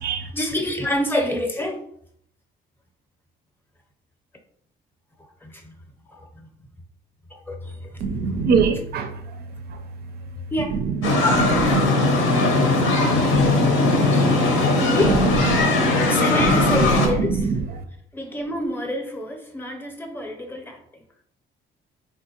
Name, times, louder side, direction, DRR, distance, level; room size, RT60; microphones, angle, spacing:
voice 1, 0.2-1.8 5.4-5.8 6.1-6.5 7.3-8.4 10.5-10.8 11.2-11.5 14.8-15.2 16.1-17.5 18.1-20.8, left 1 dB, 10° left, 3 dB, 0.6 m, -27 dB
voice 2, 8.0-9.1 10.9-11.1 11.4-11.8 13.3-13.5 14.2-14.3 14.6-14.7 15.5-15.6 16.4-17.5, right 5 dB, 55° right, 7 dB, 0.4 m, -23 dB
sound 1, 11.0-17.1, left 2 dB, 85° left, 0.8 m, -19 dB
3.5 x 2.5 x 2.8 m, 0.69 s
cardioid pair, 90°, 20 cm